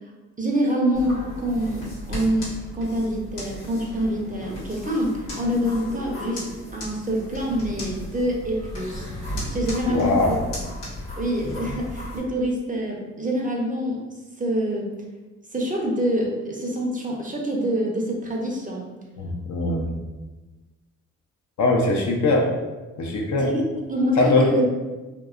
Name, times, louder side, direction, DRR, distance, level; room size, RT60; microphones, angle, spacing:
voice 1, 0.4-6.4 6.7-9.1 9.5-10.3 11.2-14.0 14.4-14.9 15.5-18.9 23.4-23.6 23.9-24.7, equal, 20° right, -1 dB, 0.6 m, -25 dB
sound 1, 0.9-12.2, left 1 dB, 85° left, 0.9 m, -35 dB
voice 2, 9.9-10.4 19.2-19.9 21.6-22.5 23.0-23.5 24.2-24.5, left 2 dB, 55° left, 1 dB, 0.6 m, -21 dB
2.6 x 2.2 x 2.4 m, 1.2 s
hypercardioid pair, 40°, 36 cm